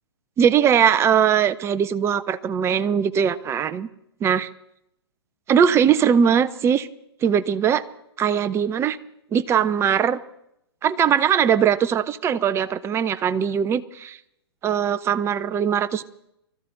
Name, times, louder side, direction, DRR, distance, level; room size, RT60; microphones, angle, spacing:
voice 1, 0.4-3.9 4.2-4.5 5.5-6.9 7.2-7.8 8.2-9.0 9.3-10.2 10.8-14.2 14.6-16.0, right 8 dB, 20° right, 13 dB, 0.8 m, -20 dB
23.5 x 14.0 x 4.0 m, 0.78 s
figure-of-eight pair, 115°, 14 cm